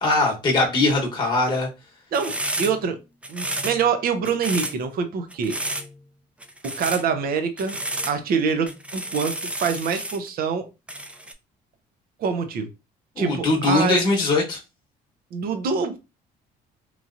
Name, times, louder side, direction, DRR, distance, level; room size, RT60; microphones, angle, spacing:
voice 1, 0.0-1.7 13.2-14.6, left 2 dB, 25° left, -2 dB, 1.0 m, -21 dB
sound 1, 2.1-2.9 3.2-3.9 4.2-4.8 5.3-5.9 6.4-7.1 7.6-8.2 8.7-10.3 10.9-11.3, right 1 dB, 5° right, 0.4 m, -31 dB
voice 2, 2.1-3.0 3.3-5.6 6.6-7.8 8.1-9.3 9.6-10.7 12.2-12.7 13.2-14.0 15.3-16.0, right 6 dB, 60° right, 8 dB, 0.6 m, -25 dB
3.0 x 2.8 x 2.5 m, 0.27 s
cardioid pair, 110°, 17 cm